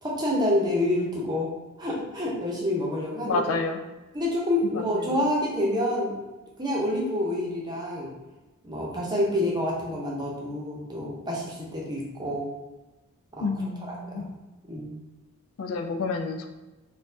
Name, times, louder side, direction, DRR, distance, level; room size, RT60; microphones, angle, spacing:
voice 1, 0.0-1.5 1.8-3.6 4.1-6.1 6.6-8.1 8.6-12.5 13.4-13.5 13.8-14.3 14.7-15.0, left 1 dB, 20° right, -3 dB, 0.7 m, -28 dB
voice 2, 3.3-3.8 13.4-14.3 15.6-16.5, left 3 dB, 65° left, 6 dB, 0.3 m, -29 dB
4.2 x 2.3 x 2.7 m, 1.1 s
head